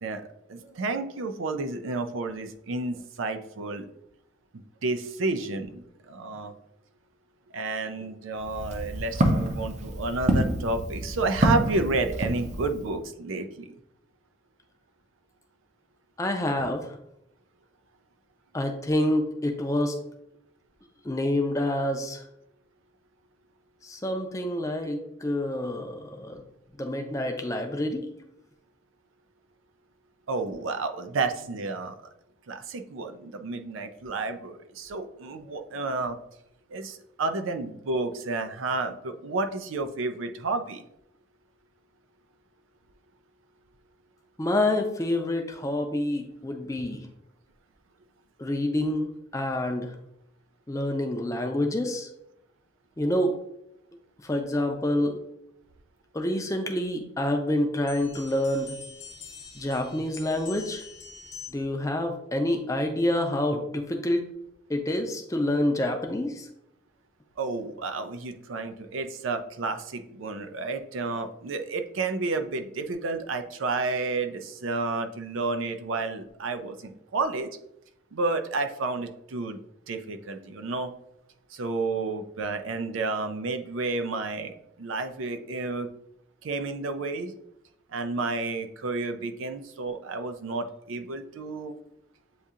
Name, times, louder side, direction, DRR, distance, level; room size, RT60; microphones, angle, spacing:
voice 1, 0.5-3.9 4.8-6.5 7.5-13.7 30.3-32.1 32.5-36.2 36.7-40.8 67.4-77.5 78.1-79.6 79.9-80.9 81.5-85.9 86.4-87.3 87.9-91.8, right 3 dB, 90° right, 8 dB, 0.5 m, -31 dB
Walk footsteps, 8.4-12.9, right 1 dB, 35° right, 0.5 m, -27 dB
voice 2, 16.2-16.9 18.5-20.0 21.0-22.2 23.8-26.4 26.8-28.1 44.4-47.1 48.4-50.0 50.7-52.1 53.0-53.4 54.2-55.2 56.1-58.8 59.6-60.8 61.5-64.3 64.7-66.5, left 1 dB, 15° left, 4 dB, 0.5 m, -27 dB
Altar Chimes(Ringtone), 57.9-61.8, left 5 dB, 60° left, 0.8 m, -45 dB
7.9 x 2.7 x 2.4 m, 0.79 s
head